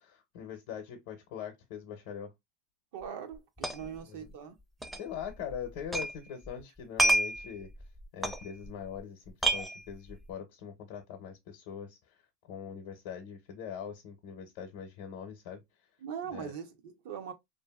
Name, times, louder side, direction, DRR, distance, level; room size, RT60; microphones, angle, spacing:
voice 1, 0.0-2.3 3.8-4.3 5.0-7.7 8.1-12.2 12.5-15.6 16.3-16.5, left 8 dB, 65° left, 0.6 m, -42 dB
voice 2, 2.9-4.6 16.0-17.3, right 8 dB, 75° right, 0.5 m, -41 dB
sound 1, 3.0-3.1 3.3-4.0 4.3-4.4 4.8-6.2 6.4-9.0 9.3-10.3, right 1 dB, 5° right, 0.4 m, -30 dB
2.6 x 2.5 x 2.2 m
supercardioid pair, 130°, 0 cm